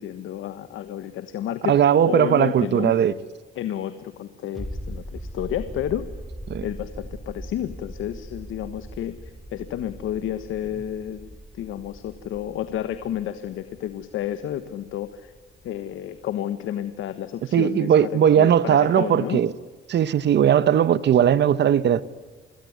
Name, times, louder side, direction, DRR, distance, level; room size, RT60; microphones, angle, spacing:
voice 1, 0.0-2.9 3.5-6.1 6.6-15.3 15.6-19.4, left 11 dB, 80° left, 1.4 m, -31 dB
voice 2, 1.7-3.1 6.5-6.6 17.5-19.5 19.9-22.0, right 9 dB, 60° right, 1.2 m, -18 dB
sound 1, 4.5-15.9 16.2-16.3, equal, ahead, 3.5 m, -40 dB
26.0 x 21.0 x 9.5 m
cardioid pair, 90°, 20 cm